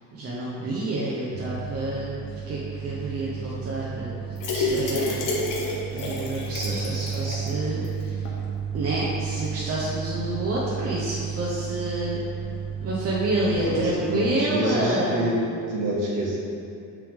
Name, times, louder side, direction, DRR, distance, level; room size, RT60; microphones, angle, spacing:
voice 1, 0.1-5.4 5.9-8.3 8.7-12.2 12.8-15.4, right 1 dB, 40° right, -5 dB, 0.8 m, -29 dB
sound 1, 1.3-13.9, right 7 dB, 15° right, 0.4 m, -33 dB
sound 2, 4.4-7.5 7.8-7.9 8.3-8.4, left 3 dB, 55° left, 1.1 m, -29 dB
voice 2, 13.6-15.3 15.7-16.4, right 1 dB, 55° right, -4 dB, 1.4 m, -26 dB
7.8 x 3.4 x 3.5 m, 2.6 s
cardioid pair, 135°, 38 cm